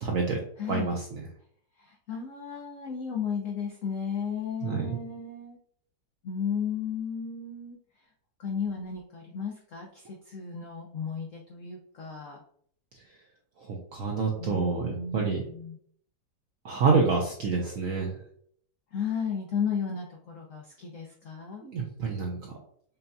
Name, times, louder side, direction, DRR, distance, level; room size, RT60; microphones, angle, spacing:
voice 1, 0.0-0.4 0.7-1.2 4.6-5.0 13.6-15.4 16.6-18.1 21.6-22.5, right 4 dB, 70° right, -1 dB, 0.8 m, -27 dB
voice 2, 0.6-0.9 1.8-5.6 6.2-7.8 8.4-12.4 14.4-15.8 18.9-21.6, left 6 dB, 75° left, 0 dB, 0.7 m, -34 dB
5.6 x 2.7 x 2.2 m, 0.62 s
omnidirectional pair, 2.0 m